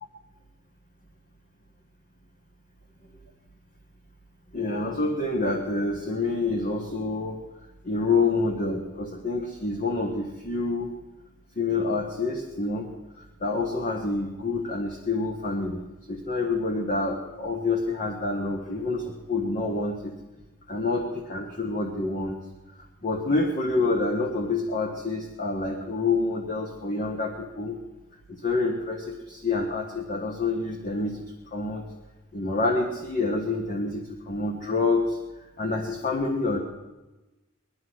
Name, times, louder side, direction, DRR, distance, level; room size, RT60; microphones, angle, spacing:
voice 1, 4.5-7.4 7.8-10.9 11.6-12.9 13.2-15.8 16.1-20.1 20.7-22.4 23.0-27.8 28.3-31.2 31.5-31.8 32.3-35.2 35.6-36.6, left 3 dB, 40° left, 2 dB, 1.4 m, -27 dB
19.0 x 12.0 x 6.2 m, 1.1 s
head